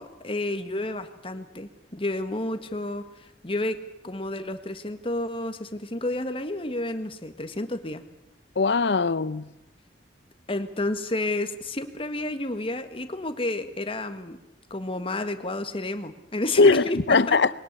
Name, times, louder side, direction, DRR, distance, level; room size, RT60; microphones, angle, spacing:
voice 1, 0.0-3.8 4.0-8.0 10.5-14.4 14.7-17.4, left 2 dB, 30° left, 1.6 m, -31 dB
voice 2, 8.6-9.5 16.6-17.5, left 4 dB, 75° left, 0.7 m, -20 dB
21.5 x 19.0 x 8.3 m
head